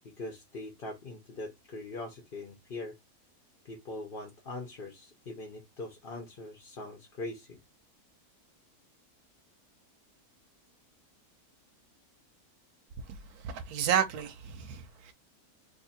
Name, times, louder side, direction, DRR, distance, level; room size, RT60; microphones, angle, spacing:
voice 1, 0.0-3.0 3.6-7.6, left 2 dB, 45° left, 0.9 m, -42 dB
voice 2, 13.4-15.1, right 8 dB, 85° right, 1.1 m, -31 dB
2.7 x 2.7 x 4.1 m
omnidirectional pair, 1.6 m